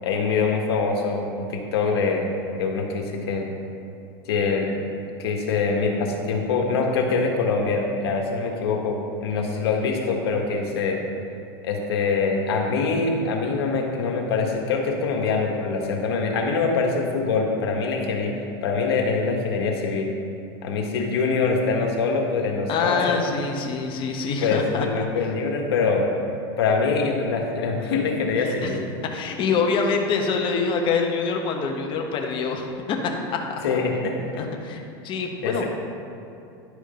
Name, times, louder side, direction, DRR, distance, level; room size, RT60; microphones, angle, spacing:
voice 1, 0.0-2.3 2.5-3.5 4.3-4.7 5.2-11.0 11.6-18.3 18.6-20.1 20.6-23.2 24.4-26.0 26.6-28.8 33.6-34.5 35.4-35.6, left 4 dB, 85° left, 1 dB, 1.5 m, -24 dB
voice 2, 22.7-25.1 28.4-28.8 29.0-33.6 34.3-35.6, left 5 dB, 40° left, 2 dB, 1.2 m, -26 dB
11.0 x 5.1 x 5.1 m, 2.7 s
supercardioid pair, 120°, 13 cm